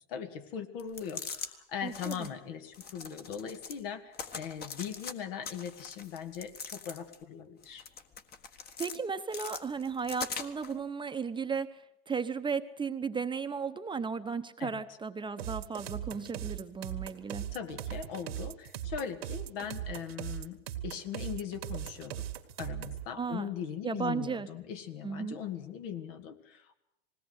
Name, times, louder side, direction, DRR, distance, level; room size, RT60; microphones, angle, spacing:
voice 1, 0.1-7.8 14.6-14.8 17.5-22.2 22.6-26.7, left 8 dB, 70° left, 7 dB, 2.2 m, -40 dB
sound 1, 0.8-1.5 1.9-2.3 2.7-3.8 4.1-5.1 5.4-7.2 7.6-9.0 9.3-10.7, left 5 dB, 30° left, 1.6 m, -42 dB
voice 2, 1.8-2.3 8.8-17.5 23.2-23.5 23.8-24.5 25.0-25.4, right 5 dB, 15° right, 9 dB, 0.9 m, -35 dB
sound 2, 15.4-23.1, right 11 dB, 90° right, 1.8 m, -39 dB
20.5 x 17.5 x 8.1 m, 0.82 s
supercardioid pair, 110°, 30 cm